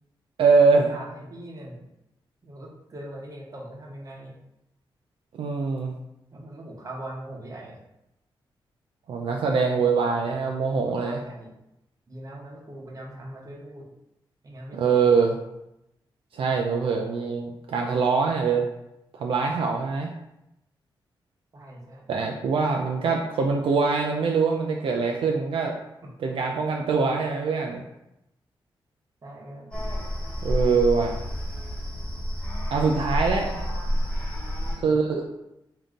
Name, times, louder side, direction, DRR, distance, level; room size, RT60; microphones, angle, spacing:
voice 1, 0.4-0.9 5.3-5.9 9.1-11.2 14.7-15.3 16.3-18.7 19.2-20.1 22.1-25.7 26.2-27.8 30.4-31.2 32.7-33.7 34.8-35.2, right 5 dB, 75° right, 1 dB, 0.4 m, -23 dB
voice 2, 0.9-1.8 2.4-4.4 6.3-7.8 9.7-10.1 10.8-11.5 12.1-13.9 14.4-15.0 21.5-22.1 26.2-26.3 29.2-29.7 34.7-35.0, right 1 dB, 40° right, -1 dB, 0.9 m, -41 dB
sound 1, 29.7-34.8, equal, 10° left, 1.0 m, -29 dB
3.6 x 2.7 x 3.6 m, 0.88 s
wide cardioid pair, 115°, 9 cm